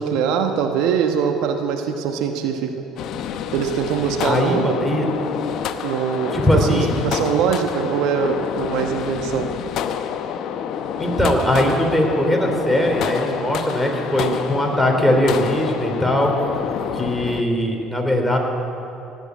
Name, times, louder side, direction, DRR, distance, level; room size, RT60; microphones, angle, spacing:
voice 1, 0.0-2.7 3.5-4.9 5.8-9.5, right 7 dB, 70° right, 5 dB, 1.1 m, -22 dB
sound 1, 3.0-17.4, left 8 dB, 60° left, 0.8 m, -28 dB
voice 2, 4.2-5.1 6.3-6.9 11.0-16.3 16.9-18.4, equal, 5° left, 1 dB, 3.5 m, -20 dB
17.0 x 9.0 x 9.5 m, 2.8 s
hypercardioid pair, 65°, 0 cm